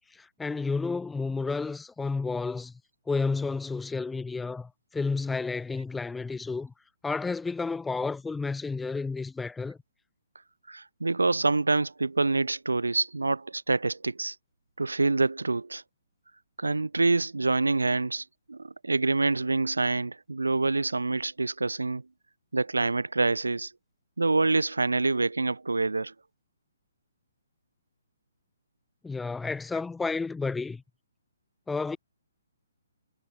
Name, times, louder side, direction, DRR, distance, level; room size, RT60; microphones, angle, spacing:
voice 1, 0.1-2.7 3.1-6.7 7.0-9.8 29.0-30.8 31.7-32.0, left 4 dB, 5° left, 1.0 m, -31 dB
voice 2, 10.7-14.4 14.8-15.8 16.6-22.0 22.5-23.7 24.2-26.1, right 3 dB, 80° right, 0.9 m, -26 dB
figure-of-eight pair, 130°, 0 cm